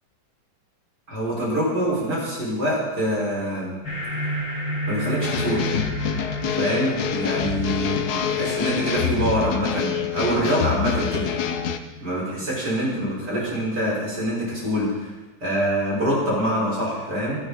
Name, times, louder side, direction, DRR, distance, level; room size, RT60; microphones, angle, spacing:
voice 1, 1.1-3.7 4.9-5.7 6.6-11.3 12.0-15.1 15.4-17.4, equal, 60° right, -5 dB, 6.5 m, -25 dB
sound 1, 3.8-12.8, right 1 dB, 90° left, 6.3 m, -33 dB
sound 2, 5.2-11.8, left 8 dB, 60° left, 1.3 m, -26 dB
22.5 x 12.0 x 4.3 m, 1.2 s
omnidirectional pair, 2.0 m